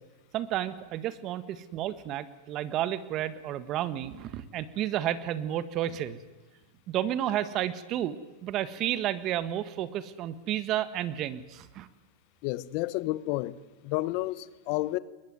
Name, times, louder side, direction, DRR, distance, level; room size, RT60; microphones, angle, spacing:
voice 1, 0.3-6.2 6.9-8.1 8.4-11.9, right 12 dB, 40° right, 1.6 m, -31 dB
voice 2, 12.4-13.5 13.8-15.0, left 18 dB, 50° left, 1.0 m, -30 dB
21.5 x 20.0 x 9.5 m
supercardioid pair, 130°, 0 cm